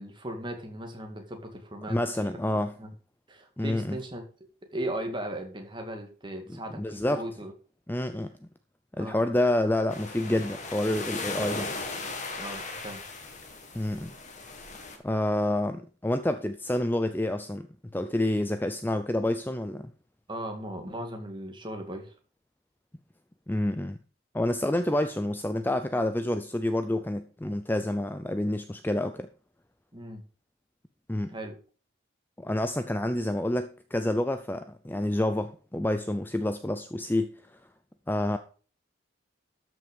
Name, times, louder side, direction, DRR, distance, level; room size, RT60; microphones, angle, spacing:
voice 1, 0.0-2.3 2.8-2.9 3.3-4.2 4.7-7.5 9.0-9.2 12.4-13.0 20.3-22.1 29.9-30.2 31.3-31.6, right 1 dB, 20° right, 2.0 m, -37 dB
voice 2, 1.9-2.7 3.6-4.0 6.5-7.2 7.9-8.3 9.0-11.7 13.7-14.1 15.0-17.7 17.9-19.9 23.5-24.0 24.3-29.3 31.1-31.3 32.4-37.3 38.1-38.4, left 1 dB, 10° left, 0.4 m, -28 dB
sound 1, 9.9-15.0, left 3 dB, 35° left, 1.9 m, -37 dB
13.0 x 6.0 x 5.2 m
head